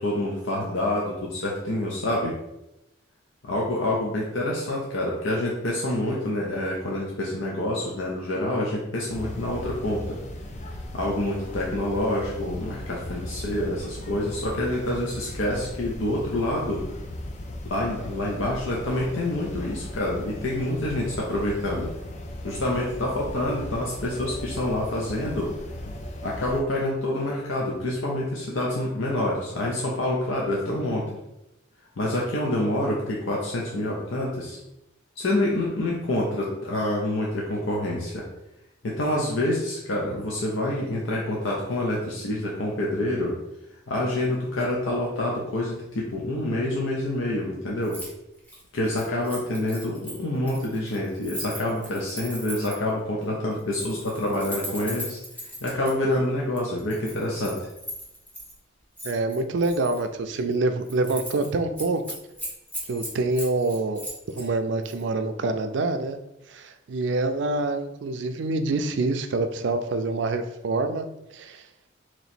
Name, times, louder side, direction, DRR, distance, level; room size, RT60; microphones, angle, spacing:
voice 1, 0.0-2.3 3.4-10.2 10.9-16.8 17.6-21.9 22.4-25.5 26.2-31.0 32.0-34.6 35.2-38.2 38.8-43.3 43.9-48.0 48.7-55.2 55.6-57.7, left 1 dB, 80° left, -3 dB, 0.7 m, -27 dB
sound 1, 9.1-26.6, left 1 dB, 35° left, 0.4 m, -37 dB
Keys jangling, 47.8-48.1 48.4-52.9 53.6-55.9 56.6-58.5 59.0-60.0 60.4-60.5 60.8-61.5 61.8-64.5 64.8-65.0, equal, 10° left, 0.8 m, -38 dB
voice 2, 59.0-62.2 62.9-64.0 64.4-66.2 66.5-71.1 71.3-71.7, right 2 dB, 65° right, 8 dB, 0.4 m, -26 dB
3.0 x 2.9 x 4.2 m, 0.89 s
head